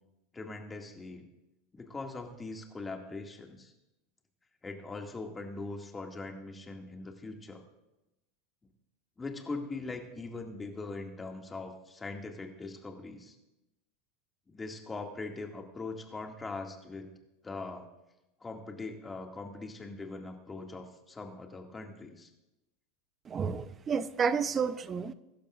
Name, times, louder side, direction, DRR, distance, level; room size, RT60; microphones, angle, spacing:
voice 1, 0.3-1.2 1.7-3.7 4.6-7.6 9.2-13.4 14.5-17.1 17.4-17.9 18.4-22.3, left 3 dB, 20° left, 3 dB, 2.2 m, -41 dB
voice 2, 23.3-25.1, right 6 dB, 30° right, 13 dB, 0.8 m, -30 dB
23.0 x 12.0 x 2.6 m, 0.94 s
hypercardioid pair, 85°, 0 cm